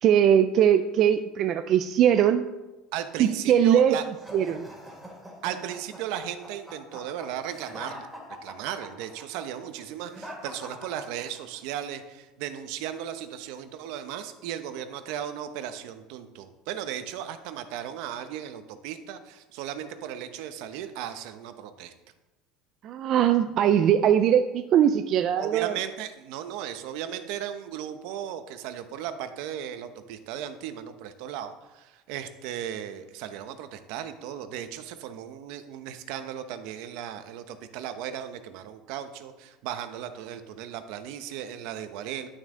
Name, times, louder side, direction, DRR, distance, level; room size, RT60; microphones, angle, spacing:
voice 1, 0.0-2.4 3.2-4.0 4.3-4.7 22.8-25.8, right 9 dB, 45° right, 8 dB, 0.4 m, -21 dB
voice 2, 2.9-4.0 5.4-21.9 25.4-42.3, right 10 dB, 65° right, 10 dB, 0.8 m, -36 dB
sound 1, 4.1-11.6, equal, 5° right, 2.3 m, -43 dB
11.0 x 6.3 x 3.8 m, 1.1 s
cardioid pair, 150°, 0 cm